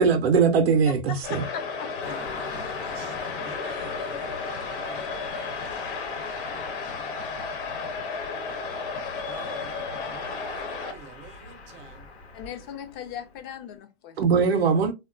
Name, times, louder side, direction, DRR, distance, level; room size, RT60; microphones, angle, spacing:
voice 1, 0.0-1.4 14.2-14.9, right 5 dB, 70° right, 0.6 m, -20 dB
voice 2, 0.9-1.2 1.5-2.2 12.3-14.2, left 9 dB, 30° left, 0.6 m, -38 dB
sound 1, 1.2-10.9, left 4 dB, 55° left, 1.0 m, -33 dB
Car passing by, 2.0-13.5, left 4 dB, 85° left, 0.9 m, -41 dB
voice 3, 2.1-3.1 3.4-5.6 9.3-12.0, right 8 dB, 25° right, 0.4 m, -47 dB
3.4 x 2.2 x 2.4 m
hypercardioid pair, 105°, 32 cm